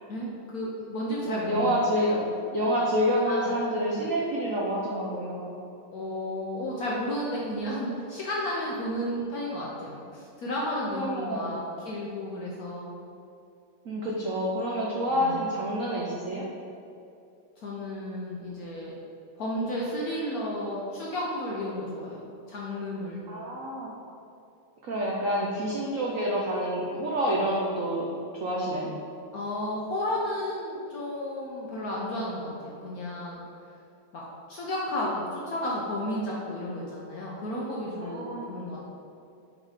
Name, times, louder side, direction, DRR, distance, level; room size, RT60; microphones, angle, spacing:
voice 1, 0.1-2.2 3.2-4.0 5.9-13.0 15.1-15.4 17.6-18.9 19.4-23.3 29.3-33.4 34.1-34.2 34.5-38.9, left 1 dB, 65° left, -5 dB, 0.9 m, -33 dB
voice 2, 1.2-2.2 2.5-5.5 9.0-9.1 10.9-11.5 13.8-16.4 23.3-23.9 24.8-28.1 28.3-28.9 38.0-38.5, equal, 75° right, -3 dB, 0.7 m, -28 dB
5.3 x 3.6 x 4.9 m, 2.6 s
omnidirectional pair, 2.3 m